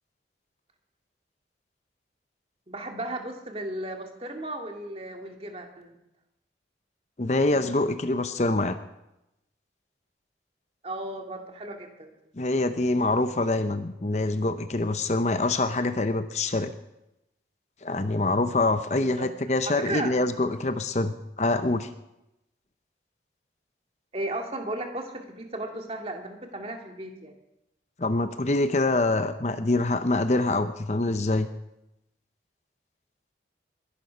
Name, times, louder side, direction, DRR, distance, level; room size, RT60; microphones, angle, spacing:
voice 1, 2.7-6.0 10.8-12.1 19.0-19.3 19.9-20.1 24.1-27.4, right 1 dB, 35° right, 3 dB, 2.1 m, -35 dB
voice 2, 7.2-8.8 12.4-16.7 17.8-21.9 28.0-31.5, left 2 dB, 40° left, 10 dB, 0.8 m, -25 dB
21.5 x 11.5 x 5.7 m, 0.89 s
head